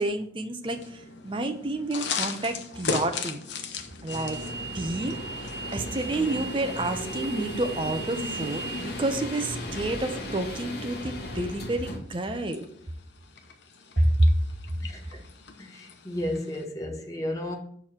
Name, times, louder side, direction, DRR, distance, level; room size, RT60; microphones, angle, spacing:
voice 1, 0.0-3.4 4.0-4.4 4.7-5.2 5.7-12.7 14.0-14.3, right 1 dB, 30° right, 0.7 m, -28 dB
sound 1, 0.6-16.6, left 5 dB, 85° left, 0.9 m, -39 dB
sound 2, 4.1-12.0, right 1 dB, 70° left, 1.4 m, -35 dB
voice 2, 15.6-17.6, left 1 dB, 20° left, 1.1 m, -33 dB
7.0 x 4.6 x 5.7 m
head